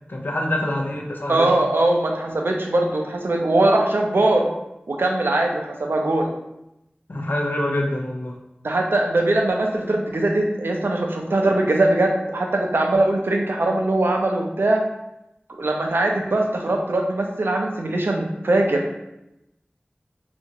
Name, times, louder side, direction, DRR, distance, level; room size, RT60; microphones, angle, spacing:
voice 1, 0.1-1.5 7.1-8.4, left 1 dB, 60° left, 1 dB, 0.5 m, -25 dB
voice 2, 1.3-4.5 4.9-6.3 8.6-14.8 15.6-18.8, right 2 dB, 90° right, 1 dB, 0.4 m, -21 dB
2.8 x 2.4 x 2.6 m, 0.89 s
wide cardioid pair, 55°, 4 cm